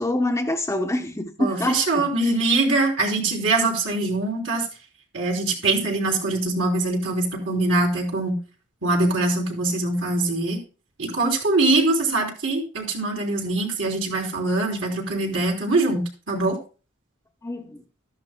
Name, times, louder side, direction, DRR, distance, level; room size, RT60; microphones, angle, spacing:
voice 1, 0.0-2.3 17.4-17.8, left 1 dB, 15° left, 0.8 m, -26 dB
voice 2, 1.4-4.7 5.1-8.4 8.8-10.6 11.0-16.6, right 2 dB, 60° right, 3.6 m, -23 dB
13.5 x 11.0 x 2.2 m
head